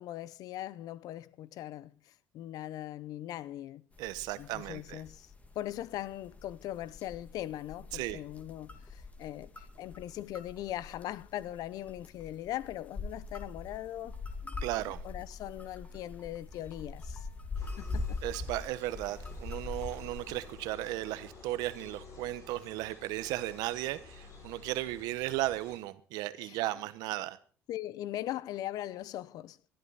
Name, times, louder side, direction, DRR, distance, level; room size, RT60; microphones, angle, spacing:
voice 1, 0.0-1.9 2.3-3.9 4.4-5.3 5.6-14.2 14.4-14.6 15.0-17.3 17.8-18.2 26.4-26.6 27.7-29.6, left 13 dB, 65° left, 0.7 m, -40 dB
sound 1, 4.0-20.5, left 3 dB, 20° left, 2.2 m, -43 dB
voice 2, 4.0-5.0 7.9-8.2 14.6-15.0 18.2-27.4, right 16 dB, 75° right, 1.0 m, -35 dB
sound 2, 17.5-25.8, left 4 dB, 50° left, 6.5 m, -52 dB
21.5 x 11.5 x 4.1 m
supercardioid pair, 75°, 7 cm